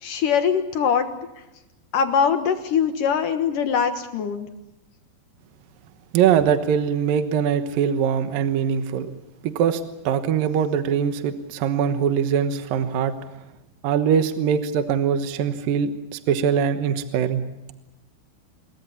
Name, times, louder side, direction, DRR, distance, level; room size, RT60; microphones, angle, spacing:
voice 1, 0.0-1.1 1.9-4.5, left 7 dB, 65° left, 7 dB, 2.6 m, -22 dB
voice 2, 6.1-9.1 9.4-13.2 13.8-17.4, right 8 dB, 65° right, 8 dB, 2.7 m, -22 dB
26.5 x 22.5 x 7.2 m, 0.94 s
omnidirectional pair, 4.7 m